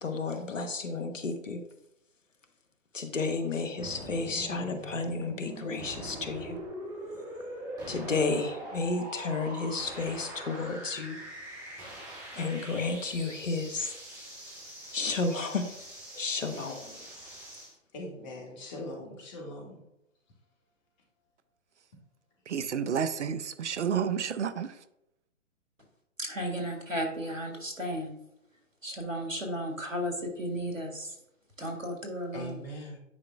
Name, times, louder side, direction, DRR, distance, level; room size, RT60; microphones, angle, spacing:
voice 1, 0.0-1.6 2.9-6.6 7.9-11.2 12.4-13.9 14.9-15.6 16.2-16.8, left 3 dB, 80° left, 7 dB, 1.0 m, -32 dB
sound 1, 3.8-17.7, right 1 dB, 10° right, 2.3 m, -43 dB
voice 2, 17.9-19.8 32.3-33.0, left 1 dB, 35° left, 0 dB, 1.7 m, -41 dB
voice 3, 22.5-24.8, right 7 dB, 65° right, 14 dB, 0.6 m, -30 dB
voice 4, 26.2-28.1 28.8-31.1 31.6-32.6, equal, 90° right, 1 dB, 1.8 m, -34 dB
9.7 x 4.8 x 2.3 m, 0.82 s
figure-of-eight pair, 125°, 38 cm